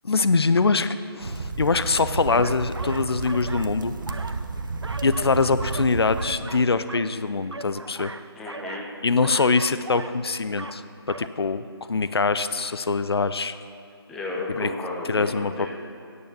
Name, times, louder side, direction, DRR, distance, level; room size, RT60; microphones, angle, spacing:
voice 1, 0.0-3.9 5.0-8.1 9.0-13.5 14.5-14.7 15.0-15.7, left 4 dB, 65° left, 12 dB, 0.5 m, -23 dB
sound 1, 1.2-6.4, right 3 dB, 50° right, 0.8 m, -32 dB
sound 2, 2.3-3.7 4.0-5.3 5.6-7.1 7.4-8.9 9.2-10.2 10.5-10.8 11.1-11.3, right 2 dB, 85° right, 0.6 m, -39 dB
voice 2, 8.4-8.9 14.1-15.7, left 2 dB, ahead, -3 dB, 0.3 m, -33 dB
9.5 x 8.5 x 6.9 m, 2.5 s
figure-of-eight pair, 150°, 14 cm